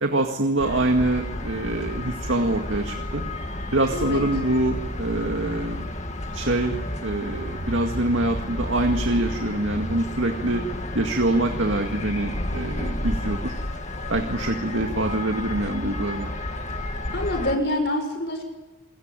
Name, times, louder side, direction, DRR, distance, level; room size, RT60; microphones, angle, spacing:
voice 1, 0.0-3.2 3.7-5.9 6.3-10.6 10.9-13.6 14.1-16.4, right 2 dB, 75° right, 4 dB, 2.1 m, -25 dB
sound 1, 0.6-17.6, left 1 dB, 35° left, 2.0 m, -31 dB
voice 2, 17.1-18.4, left 1 dB, 60° left, 5 dB, 6.3 m, -26 dB
28.0 x 22.5 x 9.1 m, 1.2 s
head